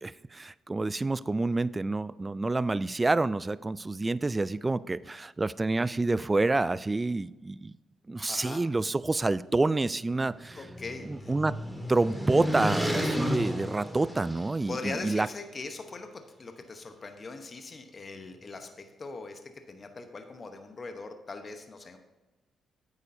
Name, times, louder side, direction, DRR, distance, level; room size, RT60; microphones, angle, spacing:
voice 1, 0.0-7.7 8.1-10.6 11.0-11.5 11.9-15.3, right 2 dB, 25° right, 18 dB, 0.3 m, -28 dB
voice 2, 8.3-8.6 10.5-11.3 14.7-19.4 19.7-22.0, left 3 dB, 40° left, 6 dB, 1.0 m, -41 dB
sound 1, 10.0-14.8, equal, 5° right, 1.7 m, -33 dB
9.8 x 8.2 x 2.7 m, 1.1 s
supercardioid pair, 55°, 0 cm